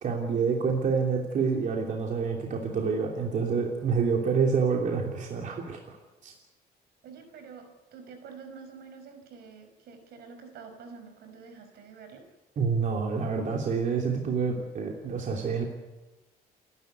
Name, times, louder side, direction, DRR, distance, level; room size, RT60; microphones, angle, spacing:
voice 1, 0.0-6.0 6.2-6.3 12.6-15.6, right 5 dB, 50° right, 0 dB, 3.1 m, -27 dB
voice 2, 7.0-12.2, right 5 dB, 70° right, 7 dB, 5.2 m, -47 dB
28.5 x 12.0 x 9.5 m, 1.1 s
cardioid pair, 110°, 17 cm